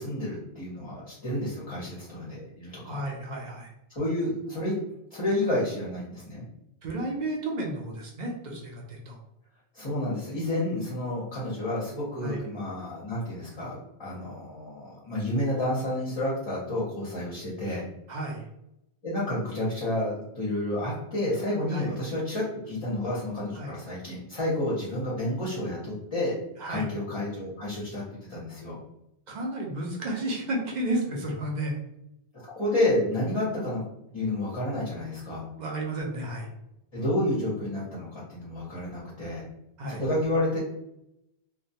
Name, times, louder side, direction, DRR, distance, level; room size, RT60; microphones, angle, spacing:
voice 1, 0.0-3.0 3.9-4.7 5.1-6.4 9.7-17.8 19.0-26.4 26.7-28.0 28.3-28.8 32.3-33.8 34.1-35.4 36.9-39.4 39.9-40.6, left 1 dB, 35° left, -7 dB, 0.6 m, -30 dB
voice 2, 2.8-3.7 6.8-9.2 12.2-12.4 18.1-18.4 21.7-21.9 23.5-23.7 26.6-26.9 29.3-31.8 35.6-36.5 39.8-40.0, right 1 dB, 55° right, 0 dB, 0.6 m, -32 dB
2.2 x 2.1 x 2.7 m, 0.83 s
omnidirectional pair, 1.1 m